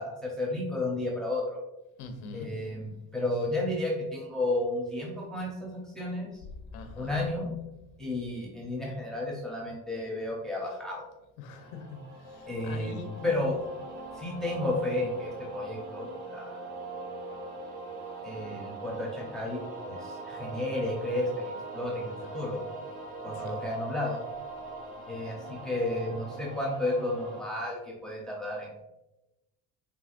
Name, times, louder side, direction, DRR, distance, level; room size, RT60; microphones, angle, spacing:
voice 1, 0.0-1.6 2.3-6.4 7.0-7.5 8.0-11.1 12.5-13.6 14.1-16.6 18.2-22.6 23.2-24.2 25.1-28.7, left 1 dB, ahead, -4 dB, 0.7 m, -32 dB
voice 2, 2.0-2.5 6.7-7.3 11.4-13.2 22.4-22.5 23.3-23.6, left 4 dB, 90° left, 6 dB, 0.8 m, -43 dB
sound 1, 11.5-27.4, right 3 dB, 25° right, 1.0 m, -42 dB
4.7 x 3.4 x 2.5 m, 0.96 s
cardioid pair, 160°, 30 cm